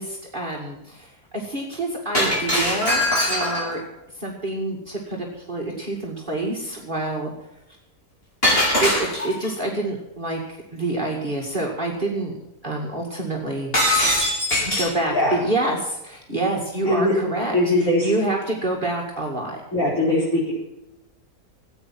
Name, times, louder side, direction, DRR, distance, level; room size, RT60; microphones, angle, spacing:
voice 1, 0.0-3.8 4.2-7.3 8.8-12.4 12.6-13.7 14.8-17.6 18.0-19.6, right 2 dB, 30° right, -2 dB, 2.4 m, -27 dB
Shatter, 2.1-3.8 8.4-9.5 13.7-15.0, left 1 dB, 35° left, 4.7 m, -21 dB
voice 2, 17.5-18.1 19.7-20.5, left 1 dB, 55° left, -9 dB, 5.7 m, -20 dB
15.0 x 8.9 x 7.5 m, 0.89 s
omnidirectional pair, 1.7 m